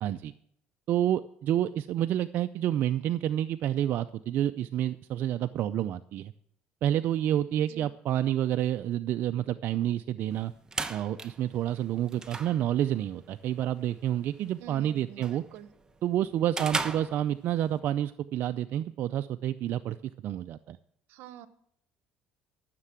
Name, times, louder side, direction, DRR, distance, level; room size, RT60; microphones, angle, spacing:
voice 1, 0.0-0.3 0.9-6.3 6.8-10.5 10.9-15.4 16.0-20.0 20.2-20.8, right 11 dB, 60° right, 10 dB, 0.4 m, -29 dB
sound 1, 10.3-17.8, right 3 dB, 20° right, 0.9 m, -39 dB
voice 2, 14.6-15.7 21.1-21.5, right 12 dB, 75° right, 14 dB, 0.9 m, -47 dB
13.5 x 6.7 x 7.4 m, 0.71 s
cardioid pair, 110°, 4 cm